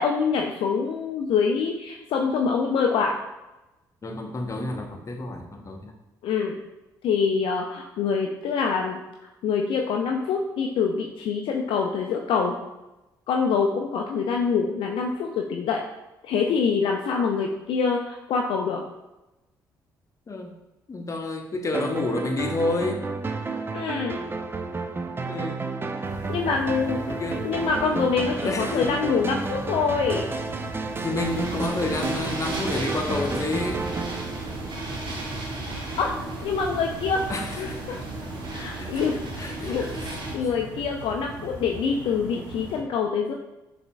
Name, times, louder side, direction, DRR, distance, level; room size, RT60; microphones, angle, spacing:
voice 1, 0.0-3.2 6.2-6.6 7.0-9.0 9.4-12.5 13.3-15.8 16.2-18.8 23.7-24.2 26.3-27.1 27.4-30.3 36.0-36.2 36.4-38.0 38.5-39.9 40.3-43.3, left 5 dB, 55° left, 1 dB, 0.4 m, -25 dB
voice 2, 4.0-5.9 20.3-20.5 20.9-23.1 25.2-25.6 27.0-27.4 28.4-29.0 31.0-33.8 37.3-37.8 38.8-39.0 39.4-40.0 40.4-40.5, left 2 dB, 30° left, 3 dB, 0.7 m, -30 dB
sound 1, 21.7-35.3, right 3 dB, 20° right, 0.4 m, -31 dB
sound 2, 26.0-42.8, right 2 dB, 85° right, 0.8 m, -40 dB
sound 3, 31.2-40.4, right 2 dB, 50° right, 0.9 m, -35 dB
6.5 x 2.5 x 2.2 m, 0.99 s
figure-of-eight pair, 45°, 10 cm